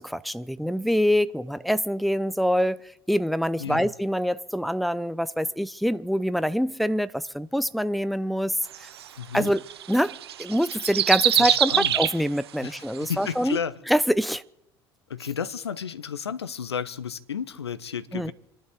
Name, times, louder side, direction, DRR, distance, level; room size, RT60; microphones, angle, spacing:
voice 1, 0.0-2.8 3.1-8.9 9.3-13.6 13.9-14.4 18.1-18.3, equal, ahead, 0.7 m, -25 dB
sound 1, 8.6-12.4 13.0-13.1, right 11 dB, 75° right, 0.7 m, -24 dB
voice 2, 9.2-9.5 11.4-12.0 12.6-13.7 15.1-18.3, left 7 dB, 85° left, 0.7 m, -32 dB
27.0 x 12.0 x 4.2 m
figure-of-eight pair, 65°, 13 cm